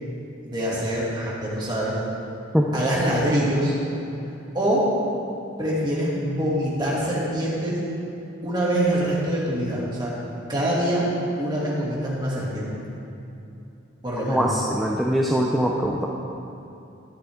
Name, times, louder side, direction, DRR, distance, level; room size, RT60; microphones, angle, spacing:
voice 1, 0.4-1.9 2.7-3.7 4.5-4.8 5.6-7.8 8.4-10.1 10.5-11.1 11.4-12.7 14.0-14.5, right 1 dB, 20° right, -7 dB, 2.6 m, -24 dB
voice 2, 14.3-16.1, equal, ahead, -3 dB, 0.6 m, -22 dB
13.0 x 10.5 x 3.7 m, 2.8 s
head